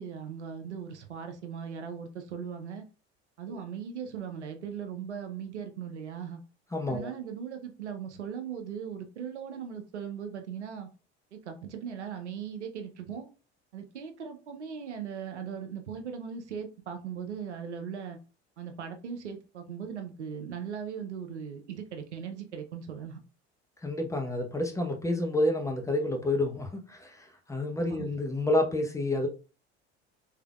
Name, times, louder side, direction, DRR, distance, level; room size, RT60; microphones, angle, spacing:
voice 1, 0.0-2.8 3.4-6.4 6.9-10.9 11.3-13.3 13.7-18.2 18.6-23.2 27.9-28.1, right 7 dB, 85° right, 0.6 m, -39 dB
voice 2, 6.7-7.1 23.8-29.3, left 1 dB, 10° left, 0.8 m, -29 dB
3.5 x 3.3 x 2.2 m
figure-of-eight pair, 65°, 34 cm